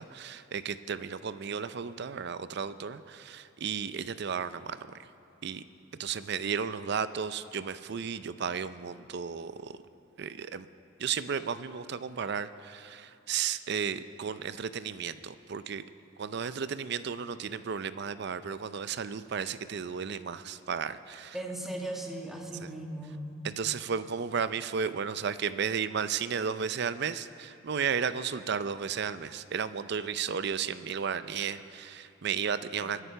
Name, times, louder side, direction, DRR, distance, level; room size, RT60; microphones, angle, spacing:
voice 1, 0.0-5.1 5.4-5.6 6.0-9.8 10.2-10.7 11.0-15.8 16.2-21.4 22.6-22.7 23.4-33.0, right 6 dB, 55° right, 14 dB, 0.5 m, -34 dB
voice 2, 21.3-23.3 32.8-33.0, right 1 dB, ahead, 0 dB, 1.5 m, -38 dB
22.0 x 9.9 x 5.7 m, 2.7 s
head